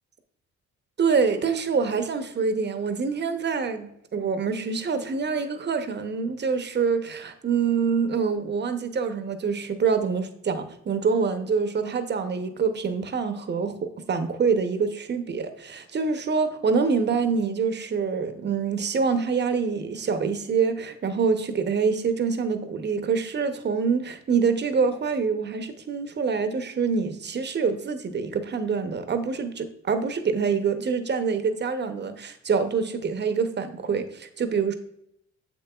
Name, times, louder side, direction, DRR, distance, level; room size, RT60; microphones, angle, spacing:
voice 1, 1.0-34.8, right 5 dB, 35° right, 9 dB, 0.8 m, -26 dB
7.5 x 6.7 x 2.3 m, 0.76 s
cardioid pair, 90°, 30 cm